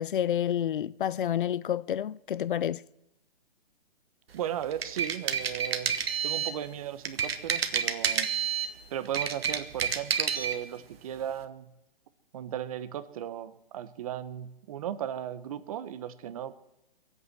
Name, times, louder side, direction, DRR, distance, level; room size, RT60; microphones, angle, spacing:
voice 1, 0.0-2.8, left 10 dB, 60° left, 0.5 m, -29 dB
voice 2, 4.3-5.9 6.2-8.3 8.9-11.7 12.3-16.6, right 10 dB, 35° right, 0.9 m, -36 dB
sound 1, 4.6-6.6 7.0-8.7 9.0-10.6, right 7 dB, 75° right, 1.5 m, -29 dB
22.5 x 8.3 x 7.8 m
hypercardioid pair, 155°, 30 cm